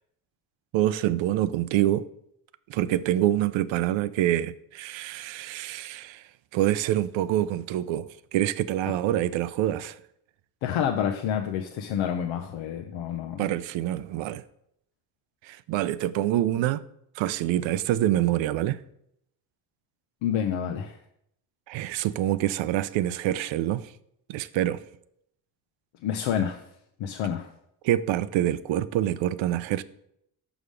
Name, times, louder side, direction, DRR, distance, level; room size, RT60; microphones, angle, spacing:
voice 1, 0.7-2.1 2.7-6.2 6.5-10.0 13.4-14.4 15.4-16.8 17.2-18.8 21.7-23.9 24.3-24.8 27.8-29.8, right 13 dB, 70° right, 0.5 m, -26 dB
voice 2, 10.6-13.5 20.2-21.0 26.0-26.6 27.0-27.5, left 8 dB, 75° left, 0.7 m, -28 dB
5.5 x 5.0 x 5.0 m
supercardioid pair, 55°, 47 cm